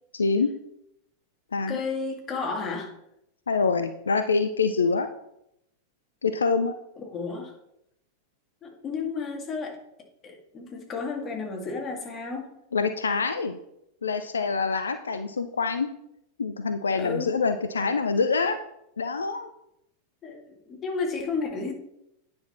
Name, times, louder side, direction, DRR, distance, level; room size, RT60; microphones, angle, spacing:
voice 1, 0.1-0.5 1.5-1.8 3.5-5.1 6.2-6.8 12.7-13.6 14.0-15.9 16.4-18.6 19.0-19.5, left 4 dB, 70° left, 10 dB, 0.5 m, -25 dB
voice 2, 1.7-2.9 7.0-7.5 8.6-9.8 10.2-12.5 17.0-17.3 20.2-21.7, left 4 dB, 25° left, 1 dB, 2.1 m, -32 dB
9.4 x 6.2 x 4.3 m, 0.80 s
figure-of-eight pair, 90°, 0 cm